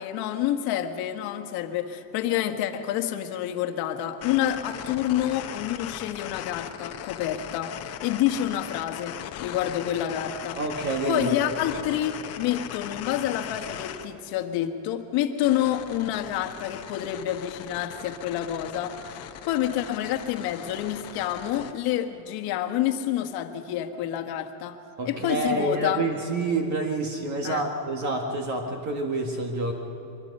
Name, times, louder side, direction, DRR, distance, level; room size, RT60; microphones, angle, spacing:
voice 1, 0.0-10.6 11.1-24.8 25.0-26.0 27.4-27.7, left 11 dB, 50° left, 6 dB, 1.5 m, -28 dB
sound 1, 4.2-14.1 15.4-21.7, left 10 dB, 30° left, 1.0 m, -39 dB
voice 2, 10.6-11.5 25.0-29.7, right 2 dB, 35° right, 3 dB, 1.8 m, -28 dB
24.5 x 21.0 x 5.4 m, 3.0 s
supercardioid pair, 150°, 47 cm